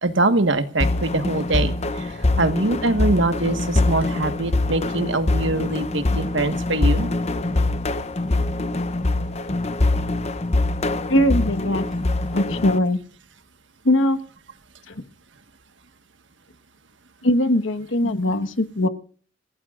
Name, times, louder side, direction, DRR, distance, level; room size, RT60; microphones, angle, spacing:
voice 1, 0.0-7.1 18.0-18.3, right 2 dB, 65° right, 9 dB, 1.5 m, -23 dB
sound 1, 0.8-12.8, left 2 dB, 35° left, 0.8 m, -23 dB
voice 2, 11.1-11.9 12.3-13.0 13.8-14.2 14.9-15.0 17.2-18.9, left 1 dB, 75° left, 10 dB, 1.4 m, -20 dB
28.5 x 16.5 x 2.5 m, 0.43 s
head